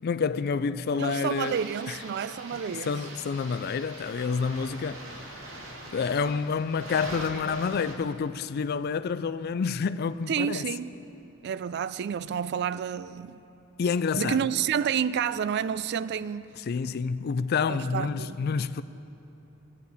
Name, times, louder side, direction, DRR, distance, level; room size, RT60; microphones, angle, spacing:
voice 1, 0.0-1.6 1.9-2.0 2.9-5.0 5.9-10.7 13.8-14.4 16.6-18.8, left 5 dB, 50° left, 0.3 m, -28 dB
sound 1, 0.9-8.0, right 1 dB, 75° right, 1.9 m, -43 dB
voice 2, 1.0-3.0 10.3-10.9 11.4-13.4 14.2-16.5 17.7-18.4, right 8 dB, 55° right, 0.3 m, -29 dB
17.0 x 10.0 x 4.1 m
head